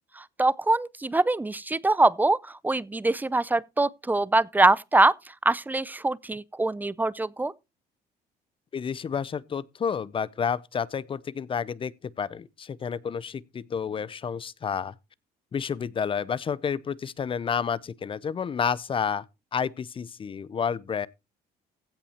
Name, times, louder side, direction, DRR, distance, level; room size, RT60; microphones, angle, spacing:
voice 1, 0.2-5.1 5.4-7.5, right 2 dB, 10° right, 0.5 m, -23 dB
voice 2, 8.7-14.9 15.5-19.2 19.5-21.1, left 7 dB, 30° left, 0.6 m, -30 dB
16.0 x 5.5 x 4.3 m
cardioid pair, 110°, 17 cm